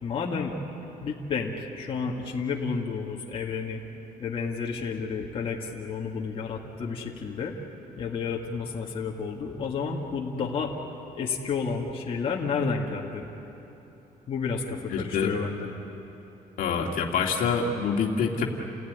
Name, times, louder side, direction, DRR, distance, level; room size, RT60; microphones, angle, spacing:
voice 1, 0.0-0.5 1.0-3.8 4.2-7.6 8.0-10.7 11.1-13.3 14.3-15.7, left 5 dB, 35° left, -2 dB, 2.2 m, -31 dB
voice 2, 14.9-15.3 16.6-18.4, left 5 dB, 65° left, 0 dB, 2.3 m, -26 dB
29.5 x 16.5 x 9.6 m, 3.0 s
cardioid pair, 160°, 16 cm